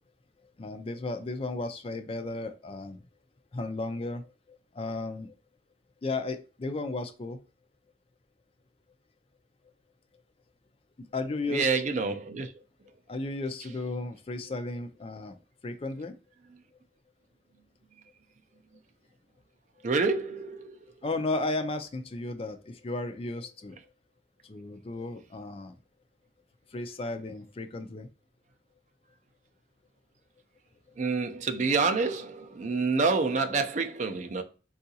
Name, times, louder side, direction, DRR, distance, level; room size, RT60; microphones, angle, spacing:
voice 1, 0.6-3.0 3.5-5.3 6.0-7.4 11.0-11.7 13.1-15.4 15.6-16.1 21.0-23.8 24.4-25.8 26.7-28.1 32.7-32.8, left 2 dB, 35° left, 0.4 m, -34 dB
voice 2, 11.5-12.5 19.8-20.8 31.0-34.4, right 4 dB, 45° right, 0.4 m, -27 dB
3.7 x 2.4 x 2.7 m
head